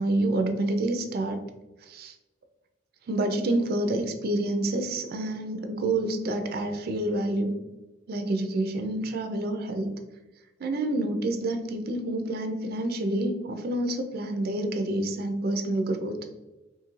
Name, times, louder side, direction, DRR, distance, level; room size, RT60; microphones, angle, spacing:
voice 1, 0.0-1.4 1.9-2.1 3.1-7.6 8.1-9.9 10.6-16.2, right 1 dB, 55° right, 6 dB, 0.4 m, -28 dB
2.7 x 2.4 x 3.0 m, 1.1 s
head